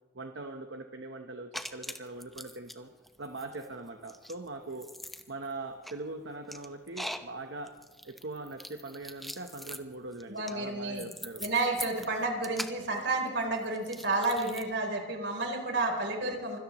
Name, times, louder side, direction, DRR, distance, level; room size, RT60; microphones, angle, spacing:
voice 1, 0.1-2.9 3.2-4.9 5.3-7.8 8.0-11.4, right 2 dB, 90° right, 5 dB, 1.1 m, -41 dB
sound 1, 1.5-2.8 3.0-14.6, equal, ahead, 0.8 m, -43 dB
voice 2, 10.3-11.1 11.4-16.6, right 2 dB, 75° right, 2 dB, 3.8 m, -31 dB
25.0 x 17.0 x 3.1 m, 1.2 s
head